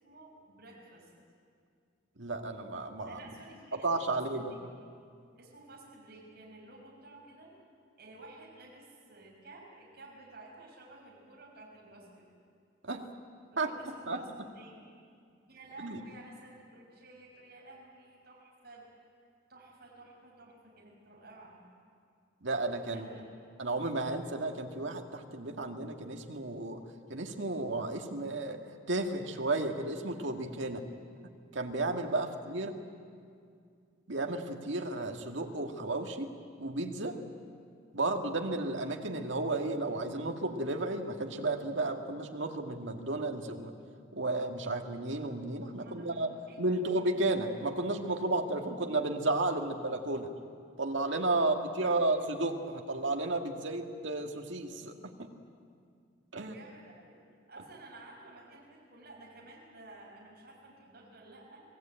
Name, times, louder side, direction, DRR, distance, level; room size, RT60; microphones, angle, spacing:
voice 1, 0.0-1.1 3.0-4.6 5.4-7.5 8.0-12.3 13.5-14.3 14.5-14.7 15.5-18.9 19.5-21.6 22.9-23.2 45.8-46.2 46.5-46.6 51.4-51.5 51.8-52.1 56.3-57.2 57.5-61.6, right 2 dB, 50° right, -3 dB, 5.7 m, -53 dB
voice 2, 2.2-3.2 3.8-4.5 12.8-13.1 13.6-13.7 14.1-14.2 15.8-16.0 22.4-23.1 23.6-26.8 27.1-28.6 28.9-30.8 31.5-32.7 34.1-36.3 36.6-37.2 37.9-43.7 44.1-46.3 46.6-50.3 50.8-54.9 55.2-55.3 56.3-56.5, right 2 dB, 70° right, 4 dB, 1.9 m, -33 dB
26.0 x 18.5 x 8.9 m, 2.3 s
head